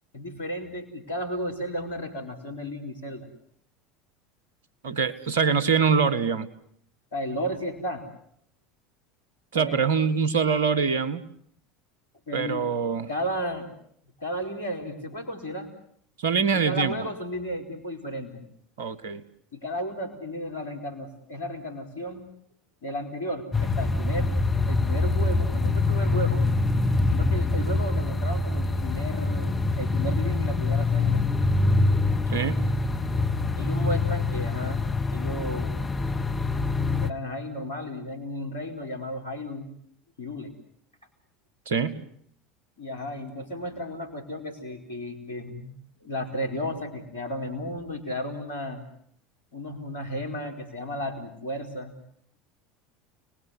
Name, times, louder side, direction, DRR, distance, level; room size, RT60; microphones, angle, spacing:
voice 1, 0.1-3.3 7.1-8.1 9.5-9.9 12.3-12.6 13.1-13.7 14.2-15.7 16.5-18.4 19.5-22.3 22.8-24.3 24.7-26.4 27.1-31.3 33.6-34.8 35.1-35.7 37.0-39.7 40.2-40.5 42.8-45.7 46.0-48.8 49.5-51.9, equal, 75° left, 6 dB, 4.7 m, -33 dB
voice 2, 4.8-6.5 9.5-11.2 12.3-13.1 16.2-17.0 18.8-19.2 32.3-32.7 41.7-42.0, right 6 dB, 70° right, 15 dB, 1.6 m, -24 dB
sound 1, 23.5-37.1, left 3 dB, 20° left, 1.8 m, -25 dB
30.0 x 20.5 x 9.6 m, 0.68 s
figure-of-eight pair, 75°, 0 cm